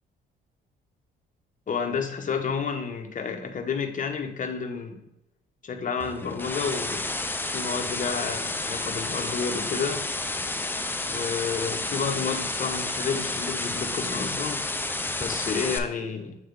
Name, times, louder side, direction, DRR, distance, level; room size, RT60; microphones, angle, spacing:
voice 1, 1.7-5.1 5.6-7.1 7.5-10.0 11.1-14.6 15.2-16.4, left 5 dB, 40° left, 5 dB, 0.9 m, -30 dB
sound 1, 6.0-15.8, left 2 dB, 10° left, 0.5 m, -30 dB
8.0 x 3.4 x 3.7 m, 0.85 s
cardioid pair, 90°, 20 cm